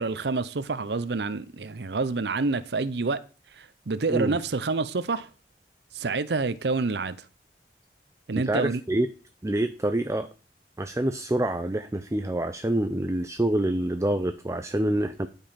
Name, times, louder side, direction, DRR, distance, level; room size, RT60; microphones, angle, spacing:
voice 1, 0.0-3.2 3.6-5.3 5.9-7.2 8.3-8.8, right 3 dB, 75° right, 0.7 m, -28 dB
voice 2, 8.5-9.1 9.4-10.3 10.8-15.3, right 1 dB, 15° right, 0.6 m, -26 dB
12.5 x 5.3 x 5.8 m
head